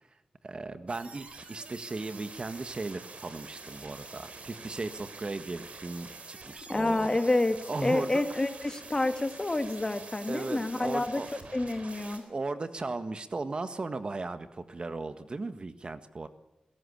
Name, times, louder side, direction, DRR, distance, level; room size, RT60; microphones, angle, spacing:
voice 1, 0.4-7.1 7.7-8.4 10.3-11.3 12.1-16.3, right 3 dB, 45° right, 11 dB, 1.6 m, -36 dB
sound 1, 0.9-12.2, right 3 dB, 65° right, 4.0 m, -47 dB
voice 2, 6.7-11.2 11.5-12.2, left 2 dB, 25° left, 9 dB, 1.9 m, -28 dB
21.0 x 17.0 x 8.5 m, 0.98 s
wide cardioid pair, 90°, 2 cm